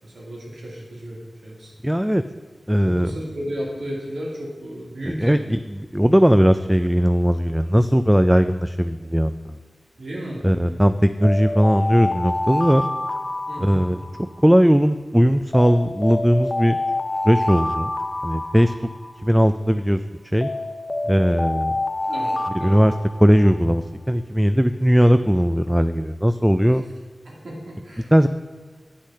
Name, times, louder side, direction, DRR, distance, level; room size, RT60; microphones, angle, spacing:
voice 1, 0.0-1.7 2.8-5.6 10.0-10.8 13.5-13.9 22.1-22.7 26.7-26.8 27.2-28.1, equal, 85° right, -4 dB, 2.7 m, -34 dB
voice 2, 1.8-2.2 2.7-3.1 5.1-5.6 5.9-9.6 10.4-12.9 13.6-14.0 14.4-16.8 17.2-17.9 18.2-18.7 19.2-20.0 20.3-20.5 21.1-21.7 22.5-22.9 23.2-26.8 28.1-28.3, equal, 5° right, 10 dB, 0.3 m, -18 dB
sound 1, 11.2-14.4 15.5-19.3 20.4-23.6, left 2 dB, 40° left, 0.6 m, -27 dB
8.3 x 6.2 x 5.7 m, 1.5 s
cardioid pair, 55°, 0 cm